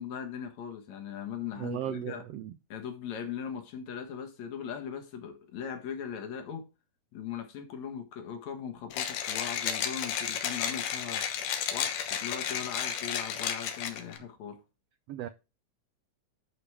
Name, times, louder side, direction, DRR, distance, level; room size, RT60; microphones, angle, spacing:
voice 1, 0.0-2.3 2.7-6.7 7.1-11.3 11.7-14.6, left 8 dB, 65° left, 2.7 m, -39 dB
voice 2, 1.6-2.5 15.1-15.3, right 11 dB, 75° right, 1.5 m, -36 dB
Mechanisms, 8.9-14.2, left 8 dB, 85° left, 2.8 m, -32 dB
11.5 x 5.0 x 3.5 m
omnidirectional pair, 3.6 m